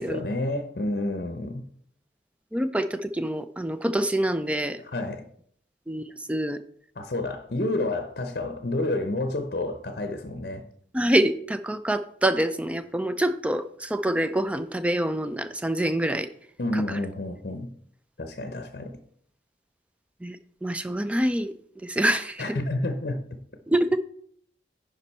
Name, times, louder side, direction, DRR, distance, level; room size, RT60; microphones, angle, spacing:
voice 1, 0.0-1.6 4.8-5.2 7.0-10.6 16.6-17.7 18.2-19.0 22.4-23.2, left 2 dB, 55° left, 7 dB, 0.7 m, -29 dB
voice 2, 2.5-4.8 5.9-6.6 10.9-16.3 16.7-17.0 20.2-20.4 20.6-21.5 21.8-22.4 23.7-24.0, right 1 dB, 5° right, 11 dB, 0.4 m, -26 dB
9.9 x 5.2 x 4.2 m, 0.65 s
head